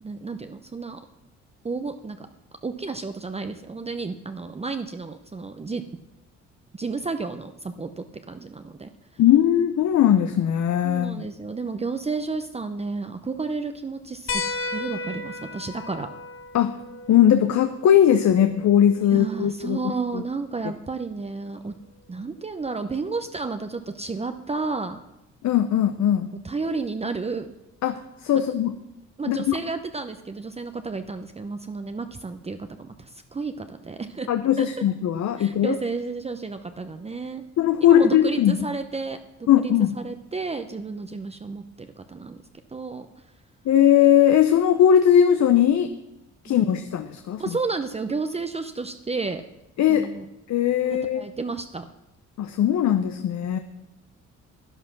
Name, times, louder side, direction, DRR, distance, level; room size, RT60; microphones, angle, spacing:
voice 1, 0.0-1.0 1.6-2.3 2.6-5.8 6.7-8.9 10.8-14.4 14.7-16.1 19.0-21.7 22.1-25.0 26.4-27.5 28.3-28.4 29.2-34.3 34.6-34.7 35.4-37.4 37.8-39.2 39.6-42.4 42.7-43.1 46.5-46.7 47.4-49.4 49.9-50.3 50.9-51.8, right 4 dB, 20° right, 8 dB, 0.7 m, -31 dB
voice 2, 9.2-11.3 16.5-16.7 17.1-19.8 20.1-20.2 25.4-26.3 27.8-28.8 29.3-29.6 34.3-35.8 37.6-38.6 39.5-40.0 43.7-45.9 46.4-47.4 49.8-50.1 50.5-51.2 52.4-53.6, left 10 dB, 65° left, 9 dB, 0.8 m, -19 dB
sound 1, 14.3-19.4 20.9-21.0 22.7-22.8, left 3 dB, 45° left, 1.3 m, -35 dB
11.0 x 10.0 x 6.0 m, 0.91 s
cardioid pair, 90°, 30 cm